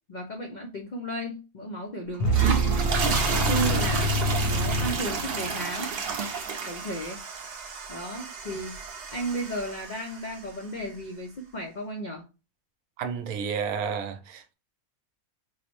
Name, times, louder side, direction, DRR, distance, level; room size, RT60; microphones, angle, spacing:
voice 1, 0.1-2.7 3.3-4.1 4.5-5.9 6.7-7.2 7.9-8.8 9.1-12.3, right 1 dB, 70° left, 0.4 m, -34 dB
sound 1, 2.1-10.5, right 5 dB, 55° right, 0.7 m, -31 dB
sound 2, 2.2-5.7, right 1 dB, 45° left, 0.7 m, -26 dB
voice 2, 13.0-14.5, right 6 dB, 80° right, 1.1 m, -31 dB
4.7 x 2.0 x 2.9 m
omnidirectional pair, 1.5 m